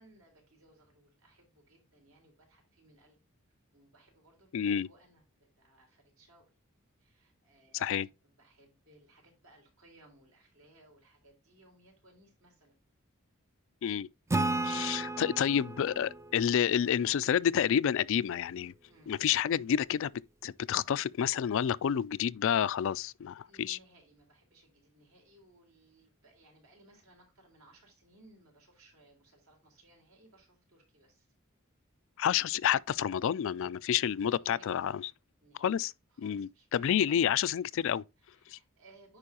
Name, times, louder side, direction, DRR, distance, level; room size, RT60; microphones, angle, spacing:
voice 1, 0.0-3.2 3.7-5.2 5.6-6.5 7.0-12.8 18.8-19.2 23.4-31.3 34.1-34.8 35.4-35.7 36.1-37.5 38.2-39.2, right 1 dB, 80° right, 3.9 m, -62 dB
voice 2, 4.5-4.9 7.7-8.1 13.8-14.1 14.6-18.7 19.1-20.1 20.4-23.8 32.2-35.0 35.6-35.9 36.2-38.0 38.5-38.6, left 9 dB, 65° left, 0.3 m, -29 dB
Acoustic guitar / Strum, 14.3-17.7, right 2 dB, 15° right, 0.4 m, -35 dB
9.8 x 4.6 x 2.9 m
head